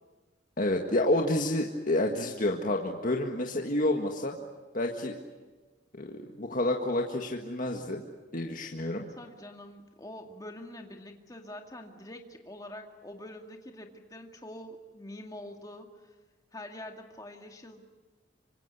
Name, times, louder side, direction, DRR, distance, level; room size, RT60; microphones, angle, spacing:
voice 1, 0.6-4.3 4.7-5.2 5.9-8.0 8.3-9.0, left 1 dB, 45° left, 2 dB, 1.8 m, -29 dB
voice 2, 9.2-16.1 16.5-17.8, left 1 dB, 20° left, 3 dB, 2.2 m, -45 dB
26.5 x 25.5 x 8.3 m, 1.3 s
head